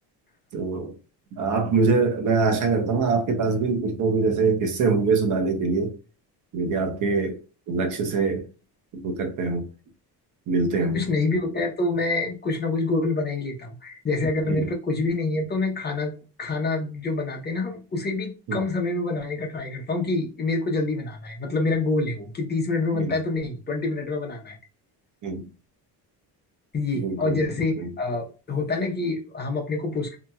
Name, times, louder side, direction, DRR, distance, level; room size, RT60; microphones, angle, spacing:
voice 1, 0.5-0.9 1.4-5.9 6.5-7.4 7.7-8.5 8.9-9.7 10.5-11.0 14.5-14.7 18.5-18.6 22.9-23.1 25.2-25.5 26.9-27.5 27.8-27.9, right 4 dB, 50° right, 0.8 m, -24 dB
voice 2, 10.9-16.1 16.4-24.6 26.7-30.2, left 3 dB, 25° left, 0.8 m, -26 dB
2.8 x 2.7 x 2.3 m
cardioid pair, 140°, 40 cm